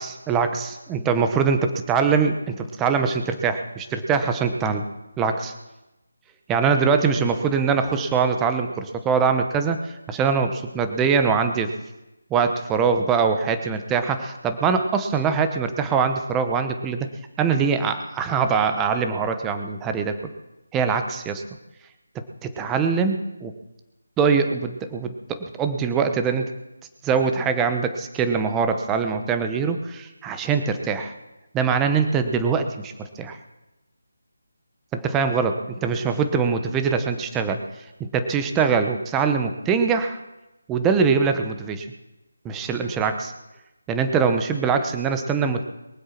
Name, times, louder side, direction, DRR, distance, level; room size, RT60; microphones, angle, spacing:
voice 1, 0.0-4.8 5.2-5.5 6.5-9.8 10.1-11.7 12.3-17.1 17.4-20.2 20.7-21.4 22.4-23.5 24.2-26.5 27.0-31.1 31.5-33.4 34.9-37.6 38.0-40.2 40.7-41.9 42.4-43.3 43.9-45.6, right 5 dB, 10° right, 7 dB, 1.0 m, -23 dB
22.5 x 7.9 x 6.0 m, 0.98 s
figure-of-eight pair, 165°, 0 cm